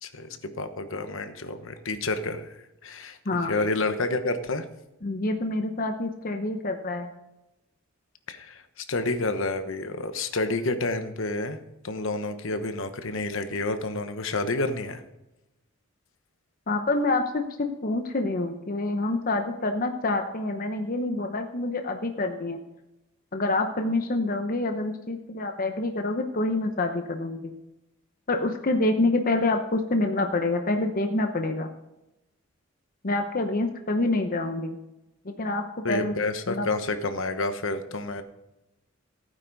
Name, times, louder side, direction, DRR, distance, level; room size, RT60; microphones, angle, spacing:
voice 1, 0.0-2.5 2.8-3.2 3.5-4.6 8.3-11.6 11.8-15.0 35.8-38.2, left 2 dB, 65° left, 8 dB, 1.1 m, -29 dB
voice 2, 3.2-3.5 5.0-7.1 16.7-22.6 23.3-27.5 28.3-31.7 33.0-34.8 35.2-36.1 36.5-36.7, left 2 dB, 45° left, 5 dB, 0.9 m, -27 dB
16.0 x 9.3 x 4.1 m, 0.94 s
head